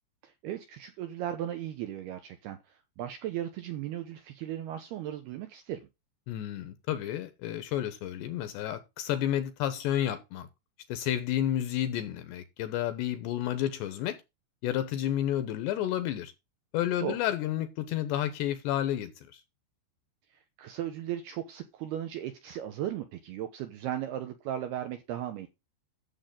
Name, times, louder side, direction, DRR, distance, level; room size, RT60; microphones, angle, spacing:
voice 1, 0.2-2.6 3.0-5.9 17.0-17.2 20.6-25.5, right 11 dB, 80° right, 2.4 m, -36 dB
voice 2, 6.3-10.5 10.9-14.2 14.6-16.3 16.7-19.4, left 11 dB, 75° left, 2.8 m, -31 dB
11.5 x 7.2 x 3.8 m
omnidirectional pair, 5.7 m